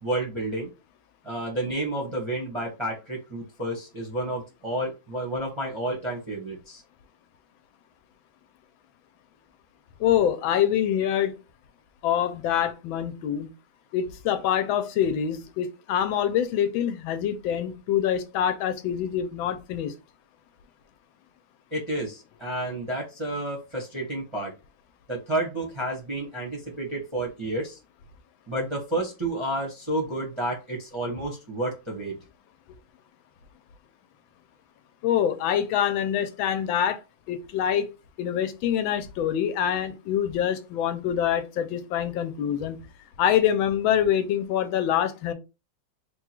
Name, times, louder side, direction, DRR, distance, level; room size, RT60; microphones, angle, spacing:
voice 1, 0.0-0.7 1.2-6.8 21.7-24.5 25.1-27.8 28.5-32.1, right 1 dB, 25° right, 0.7 m, -30 dB
voice 2, 10.0-11.3 12.0-13.5 13.9-19.9 35.0-37.0 37.3-37.9 38.2-42.8 43.2-45.3, left 9 dB, 80° left, 1.4 m, -25 dB
3.6 x 2.3 x 4.4 m
omnidirectional pair, 2.2 m